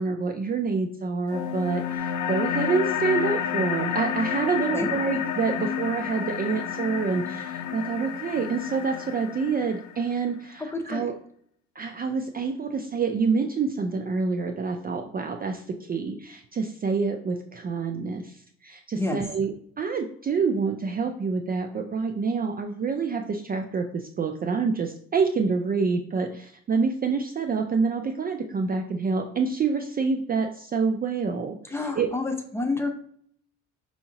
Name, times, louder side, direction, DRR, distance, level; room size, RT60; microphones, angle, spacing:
voice 1, 0.0-11.1 11.8-32.1, right 5 dB, 30° right, 5 dB, 0.4 m, -27 dB
sound 1, 1.3-10.3, left 8 dB, 75° left, 0.5 m, -30 dB
voice 2, 10.7-11.1 19.0-19.2 31.7-32.9, left 2 dB, 10° left, 4 dB, 0.7 m, -28 dB
5.4 x 2.8 x 2.8 m, 0.63 s
cardioid pair, 90°, 30 cm